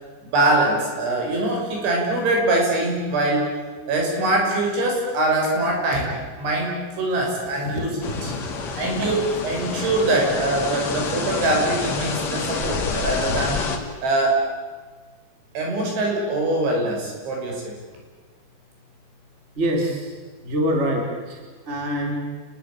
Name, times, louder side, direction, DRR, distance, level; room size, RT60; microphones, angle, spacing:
voice 1, 0.3-3.5 3.9-8.0 8.2-8.3 8.8-13.6 14.0-14.5 15.6-17.6, right 2 dB, 60° right, 0 dB, 8.5 m, -23 dB
sound 1, 8.0-13.8, left 4 dB, 45° left, 2.9 m, -28 dB
voice 2, 19.6-20.2 20.4-22.2, equal, 15° right, 1 dB, 3.8 m, -25 dB
30.0 x 21.0 x 8.9 m, 1.4 s
omnidirectional pair, 6.0 m